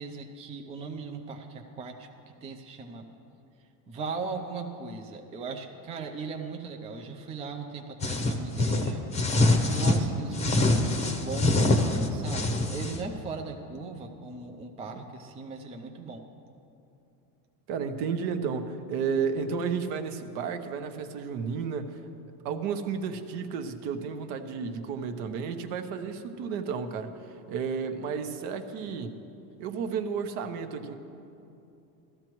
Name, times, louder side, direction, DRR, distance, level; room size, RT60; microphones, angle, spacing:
voice 1, 0.0-2.1 2.4-3.1 3.9-16.2, right 4 dB, 15° right, 3 dB, 0.4 m, -38 dB
sound 1, 8.0-10.0 10.3-13.0, left 2 dB, 15° left, 0.8 m, -24 dB
voice 2, 17.7-22.0 22.4-27.1 27.5-29.2 29.6-30.9, right 6 dB, 55° right, 8 dB, 1.0 m, -32 dB
16.0 x 13.0 x 3.1 m, 2.7 s
supercardioid pair, 130°, 49 cm